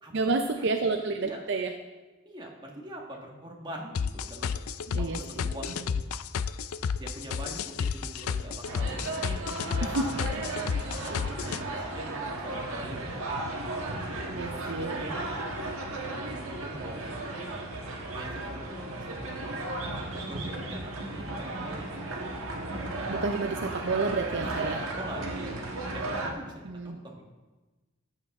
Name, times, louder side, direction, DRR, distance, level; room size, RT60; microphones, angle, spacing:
voice 1, 0.1-1.7 4.9-5.2 9.9-10.1 14.3-15.1 23.1-24.8 26.6-27.0, right 3 dB, 55° right, 5 dB, 0.6 m, -30 dB
voice 2, 2.2-4.6 5.0-6.0 7.0-10.0 10.4-13.0 14.0-15.4 16.2-17.5 18.1-18.8 19.6-19.7 20.1-22.2 24.4-25.6 25.8-26.5 26.8-27.2, right 1 dB, 20° right, -1 dB, 1.5 m, -43 dB
sound 1, 3.9-11.6, left 6 dB, 80° left, 0.4 m, -31 dB
sound 2, 8.6-26.3, right 2 dB, 75° right, 1.6 m, -35 dB
13.5 x 8.4 x 3.6 m, 1.2 s
head